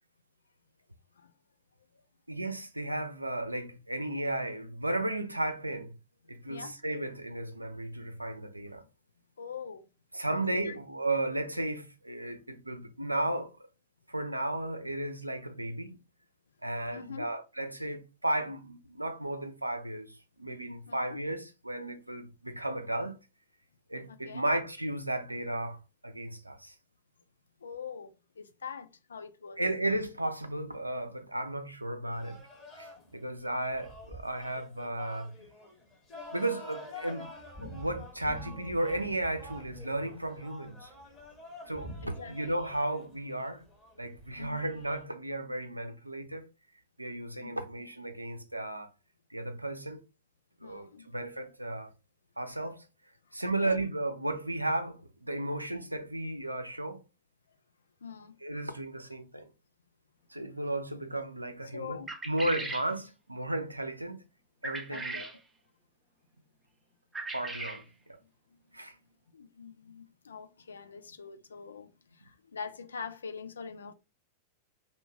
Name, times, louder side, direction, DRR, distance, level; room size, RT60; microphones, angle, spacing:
voice 1, 2.3-6.0 6.3-8.8 10.1-13.6 14.1-16.0 16.6-23.2 23.9-26.7 29.6-32.4 32.8-35.3 36.3-37.3 37.6-40.9 41.7-43.6 44.0-46.5 47.0-48.9 49.3-50.0 50.6-51.9 52.4-52.8 53.3-57.0 58.4-59.5 60.3-64.2 64.6-65.2 67.3-67.8 68.1-68.2 68.7-69.0, right 1 dB, 85° right, 0.3 m, -34 dB
voice 2, 9.4-9.8 10.3-10.8 16.8-17.3 20.9-21.2 24.1-24.5 27.6-29.6 42.0-42.6 44.4-44.7 47.4-47.6 50.6-51.1 53.5-53.8 58.0-58.4 61.7-62.1 64.9-65.3 68.5-68.8 69.3-73.9, left 6 dB, 70° left, 0.3 m, -44 dB
sound 1, 32.1-45.0, left 1 dB, 25° left, 1.1 m, -47 dB
sound 2, 62.1-62.9 64.6-65.4 67.1-67.8, right 3 dB, 15° right, 0.4 m, -38 dB
2.7 x 2.2 x 2.7 m
figure-of-eight pair, 90°, 0 cm